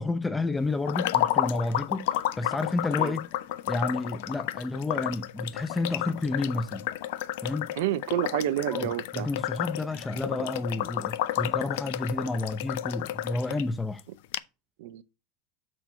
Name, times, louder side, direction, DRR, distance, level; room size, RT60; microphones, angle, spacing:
voice 1, 0.0-2.1 2.4-3.3 3.7-6.9 7.4-7.7 8.7-14.0, left 2 dB, 15° left, 0.6 m, -30 dB
sound 1, 0.9-13.6 14.0-14.1 14.3-14.4, left 13 dB, 65° left, 0.5 m, -31 dB
voice 2, 7.8-9.3 10.4-10.5 14.8-15.0, right 12 dB, 70° right, 0.4 m, -29 dB
6.2 x 4.3 x 6.1 m
hypercardioid pair, 85°, 0 cm